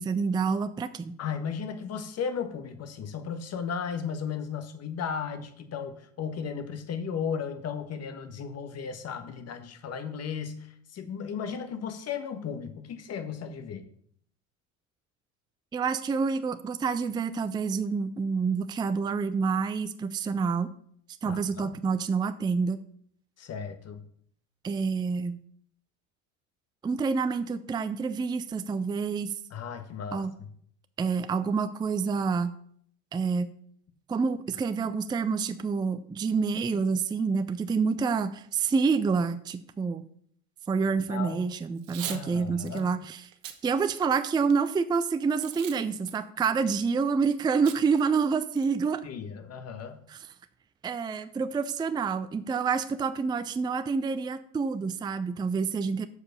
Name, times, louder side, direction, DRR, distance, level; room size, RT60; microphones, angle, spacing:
voice 1, 0.0-1.2 15.7-20.7 21.2-22.8 24.6-25.4 26.8-29.3 30.1-30.3 31.0-32.5 33.1-33.5 34.1-40.0 40.7-43.3 43.6-49.0 50.1-50.3 50.8-56.1, right 5 dB, 10° right, 11 dB, 0.4 m, -28 dB
voice 2, 1.2-13.8 21.2-21.8 23.4-24.0 29.5-30.5 41.1-41.4 42.0-43.0 49.0-50.0, left 6 dB, 40° left, 8 dB, 1.4 m, -35 dB
Packing tape duct tape / Tearing, 41.8-42.2 42.7-42.8 43.3-43.6 44.1-44.7 45.4-45.8 46.1-46.2 47.7-47.8 48.2-48.3 48.6-48.9, right 11 dB, 85° right, 1.1 m, -40 dB
7.4 x 4.9 x 6.7 m, 0.62 s
supercardioid pair, 95°, 38 cm